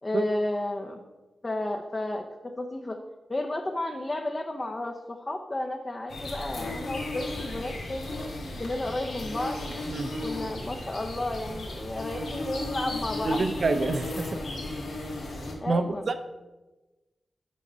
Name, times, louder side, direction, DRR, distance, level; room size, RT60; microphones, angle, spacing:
voice 1, 0.0-1.0 1.4-2.3 2.6-3.0 3.3-8.1 8.6-9.6 10.2-13.5 15.6-16.1, left 1 dB, 25° left, 2 dB, 0.6 m, -32 dB
sound 1, 6.1-15.5, left 1 dB, 80° left, 1.5 m, -35 dB
voice 2, 13.2-14.4 15.7-16.2, right 3 dB, 55° right, 9 dB, 0.6 m, -27 dB
6.2 x 5.2 x 5.5 m, 1.1 s
wide cardioid pair, 115°, 0 cm